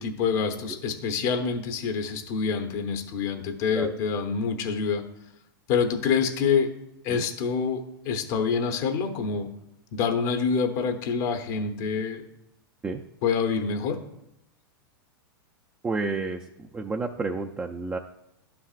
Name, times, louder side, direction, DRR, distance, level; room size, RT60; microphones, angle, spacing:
voice 1, 0.0-5.0 5.7-6.7 7.0-9.5 9.9-12.2 13.2-14.0, left 6 dB, 55° left, 5 dB, 0.9 m, -26 dB
voice 2, 15.8-18.0, right 3 dB, 15° right, 3 dB, 0.4 m, -31 dB
11.0 x 5.9 x 2.5 m, 0.83 s
hypercardioid pair, 110°, 12 cm